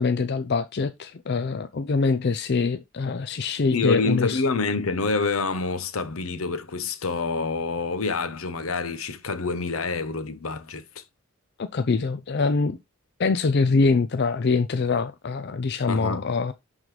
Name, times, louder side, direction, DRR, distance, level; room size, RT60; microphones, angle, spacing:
voice 1, 0.0-4.4 11.6-12.8 13.2-16.5, left 4 dB, 50° left, 0.5 m, -24 dB
voice 2, 3.7-11.0 15.9-16.3, left 4 dB, 75° left, 0.9 m, -27 dB
10.5 x 3.9 x 3.2 m
head